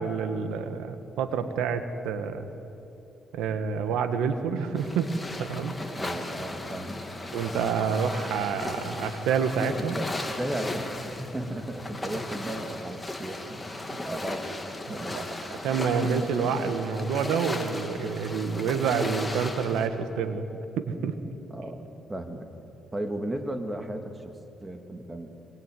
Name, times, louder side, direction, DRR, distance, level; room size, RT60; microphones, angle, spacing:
voice 1, 0.0-2.5 3.3-5.1 5.4-5.7 7.3-10.0 15.6-20.5 20.8-21.1, right 6 dB, 90° right, 9 dB, 1.9 m, -28 dB
sound 1, 4.7-19.9, left 2 dB, 15° left, 3.0 m, -36 dB
voice 2, 5.9-7.1 9.7-14.5 14.9-15.3 21.5-22.5 22.9-24.4 24.6-25.3, right 1 dB, 15° right, 5 dB, 2.7 m, -35 dB
24.0 x 21.5 x 9.6 m, 2.9 s
cardioid pair, 90°, 0 cm